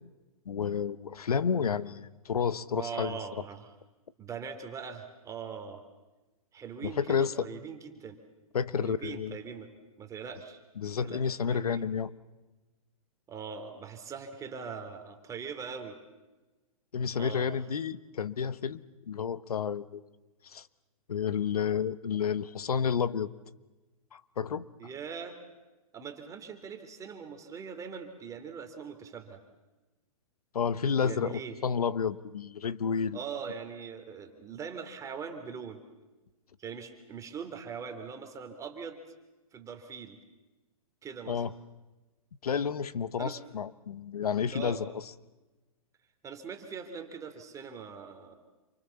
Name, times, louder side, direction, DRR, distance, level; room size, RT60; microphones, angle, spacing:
voice 1, 0.4-3.2 6.8-7.5 8.5-9.4 10.8-12.1 16.9-18.8 19.1-20.0 20.4-20.7 21.1-23.3 24.1-24.7 30.5-33.2 41.3-41.5 42.4-45.0, left 7 dB, 85° left, 15 dB, 1.3 m, -30 dB
voice 2, 2.7-3.7 4.2-5.8 6.5-8.2 8.8-9.7 10.0-10.6 11.0-11.9 13.3-16.0 17.1-17.5 24.8-25.4 25.9-29.4 31.0-31.6 33.1-35.8 36.6-39.0 39.5-40.2 41.0-41.4 43.2-43.4 44.5-44.8 46.2-48.4, right 6 dB, 15° right, 6 dB, 3.2 m, -41 dB
28.0 x 24.5 x 7.2 m, 1.1 s
hypercardioid pair, 135°, 19 cm